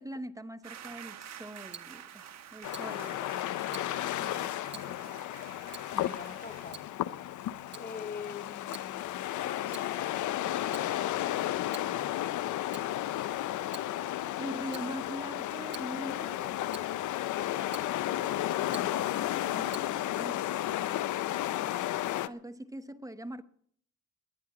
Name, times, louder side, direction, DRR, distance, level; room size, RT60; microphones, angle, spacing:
voice 1, 0.0-3.4 3.7-5.1 14.4-16.6 18.5-20.6 22.3-23.4, right 1 dB, 10° right, 0.9 m, -43 dB
sound 1, 0.6-6.7, right 9 dB, 60° right, 1.5 m, -49 dB
Tick-tock, 1.2-20.3, right 7 dB, 35° right, 1.0 m, -54 dB
sound 2, 2.6-22.3, left 13 dB, 75° left, 0.7 m, -33 dB
voice 2, 2.6-3.4 5.9-6.9 7.8-12.2, left 6 dB, 30° left, 0.8 m, -45 dB
20.5 x 10.0 x 5.9 m
cardioid pair, 90°, 30 cm